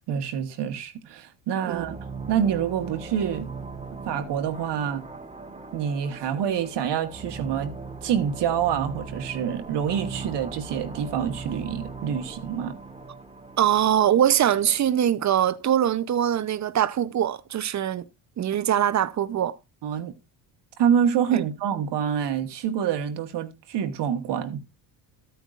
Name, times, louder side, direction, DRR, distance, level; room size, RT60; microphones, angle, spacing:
voice 1, 0.1-2.0 2.3-3.5 4.1-5.1 5.7-7.7 8.0-12.7 19.8-20.1 20.8-24.6, right 8 dB, 60° right, 1.5 m, -26 dB
sound 1, 1.7-15.0, right 4 dB, 10° right, 1.2 m, -39 dB
voice 2, 13.6-18.0 18.4-19.6 21.3-21.4, right 10 dB, 35° right, 0.7 m, -22 dB
13.0 x 9.2 x 2.5 m
cardioid pair, 100°, 47 cm